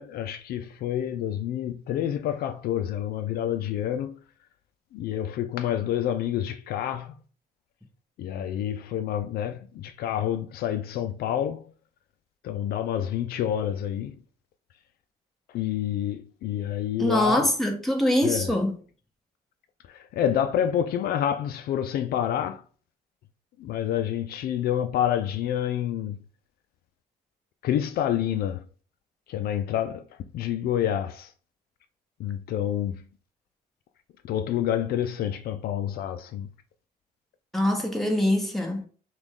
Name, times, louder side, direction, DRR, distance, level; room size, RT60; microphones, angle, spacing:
voice 1, 0.0-4.1 4.9-7.2 8.2-11.7 12.4-14.1 15.5-17.5 18.2-18.5 19.9-22.6 23.6-26.2 27.6-28.6 29.3-30.0 30.3-31.3 32.2-33.0 34.2-36.5, left 10 dB, 65° left, 0.4 m, -28 dB
voice 2, 17.0-18.7 37.5-38.9, left 1 dB, ahead, 1.2 m, -24 dB
6.0 x 2.4 x 3.6 m
cardioid pair, 110°, 17 cm